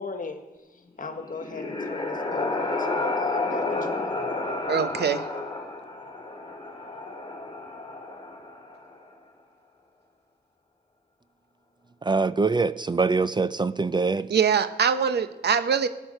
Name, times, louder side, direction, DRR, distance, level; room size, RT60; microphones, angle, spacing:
voice 1, 0.0-4.2, left 4 dB, 55° left, 6 dB, 1.5 m, -38 dB
sound 1, 1.1-9.0, left 2 dB, 30° left, 2.3 m, -31 dB
voice 2, 4.7-5.3 14.3-15.9, right 7 dB, 90° right, 11 dB, 0.8 m, -23 dB
voice 3, 12.0-14.3, right 4 dB, 25° right, 14 dB, 0.4 m, -24 dB
17.5 x 8.4 x 6.6 m, 1.1 s
wide cardioid pair, 105°, 17 cm